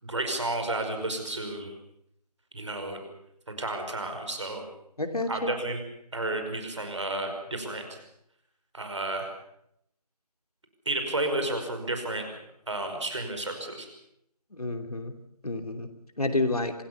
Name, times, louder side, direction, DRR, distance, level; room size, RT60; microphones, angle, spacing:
voice 1, 0.0-1.7 2.5-3.0 3.5-4.7 5.3-5.8 6.1-7.9 8.7-9.3 10.9-12.2 12.7-13.9, right 2 dB, 45° right, 5 dB, 5.5 m, -31 dB
voice 2, 5.0-5.5 14.5-15.1 15.4-15.9 16.2-16.7, left 2 dB, 65° left, 6 dB, 2.9 m, -29 dB
26.5 x 18.0 x 7.0 m, 0.77 s
figure-of-eight pair, 170°, 21 cm